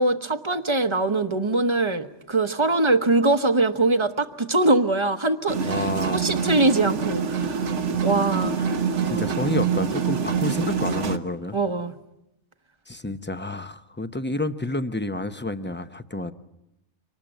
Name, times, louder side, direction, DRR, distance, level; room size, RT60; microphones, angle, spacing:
voice 1, 0.0-7.7 8.0-8.6 9.1-9.3 11.5-11.9, right 2 dB, 25° right, 9 dB, 1.0 m, -23 dB
sound 1, 5.5-11.2, right 6 dB, 80° right, 1.5 m, -25 dB
voice 2, 5.6-6.4 8.3-8.7 9.0-11.6 12.9-16.3, left 2 dB, 10° left, 10 dB, 0.7 m, -30 dB
25.0 x 19.5 x 9.0 m, 0.91 s
omnidirectional pair, 1.2 m